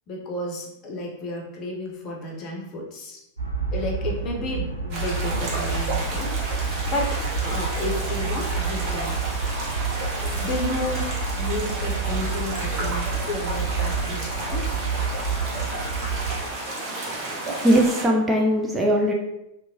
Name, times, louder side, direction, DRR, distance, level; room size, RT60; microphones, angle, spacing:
voice 1, 0.1-3.2 3.7-6.4 6.8-9.2 10.3-11.1 11.3-14.7, left 2 dB, 35° left, -1 dB, 0.7 m, -32 dB
sound 1, 3.4-16.4, right 5 dB, 85° right, 0.3 m, -28 dB
sound 2, 4.9-18.1, right 2 dB, 40° right, 0.7 m, -32 dB
voice 2, 17.1-19.1, equal, 15° right, -1 dB, 0.4 m, -21 dB
2.8 x 2.1 x 2.7 m, 0.86 s
figure-of-eight pair, 90°, 0 cm